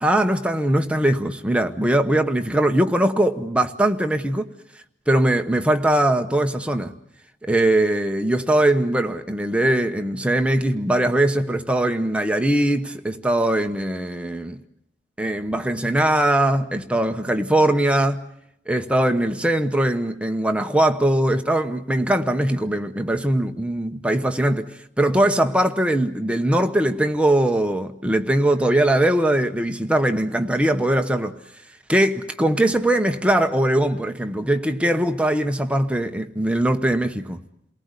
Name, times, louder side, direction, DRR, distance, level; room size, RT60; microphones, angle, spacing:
voice 1, 0.0-4.5 5.1-6.9 7.5-14.6 15.2-18.2 18.7-24.7 25.0-31.4 31.9-37.4, right 1 dB, 5° right, 0.9 m, -21 dB
29.0 x 19.0 x 8.2 m
head